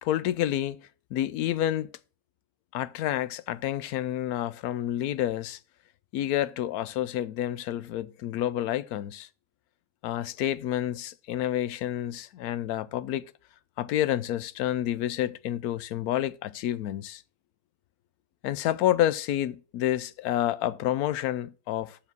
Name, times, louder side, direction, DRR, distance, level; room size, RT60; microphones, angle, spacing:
voice 1, 0.0-0.8 1.1-1.9 2.7-5.6 6.1-9.3 10.0-13.2 13.8-17.2 18.4-22.0, left 12 dB, 75° left, 1.0 m, -29 dB
7.1 x 6.7 x 3.9 m
omnidirectional pair, 1.7 m